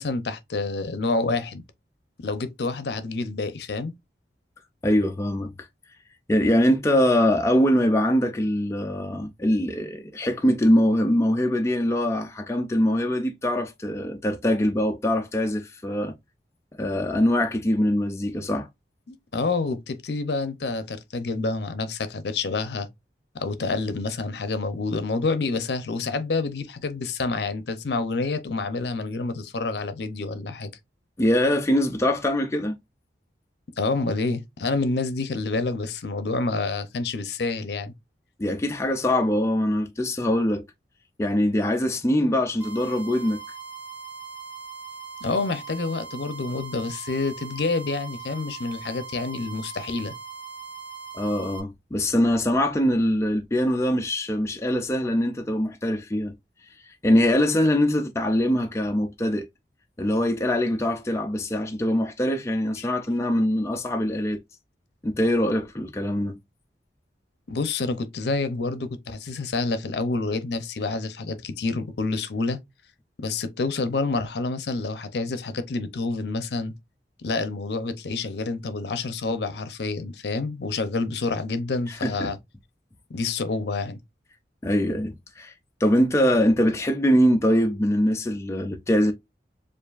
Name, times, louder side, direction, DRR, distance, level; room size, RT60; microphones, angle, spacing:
voice 1, 0.0-1.6 2.2-3.9 19.1-22.9 23.3-30.7 33.8-37.9 45.2-50.1 62.8-62.9 67.5-72.6 73.2-76.7 77.2-82.4 83.1-84.0, left 3 dB, 70° left, 0.6 m, -28 dB
voice 2, 4.8-5.7 6.3-16.1 16.8-18.7 31.2-32.7 38.4-40.6 41.2-43.4 51.1-56.3 56.8-59.5 60.0-64.4 65.0-66.4 81.9-82.3 84.6-85.5 85.8-89.1, equal, 15° left, 0.4 m, -23 dB
sound 1, 42.6-51.6, right 5 dB, 10° right, 0.9 m, -40 dB
7.0 x 2.5 x 2.4 m
head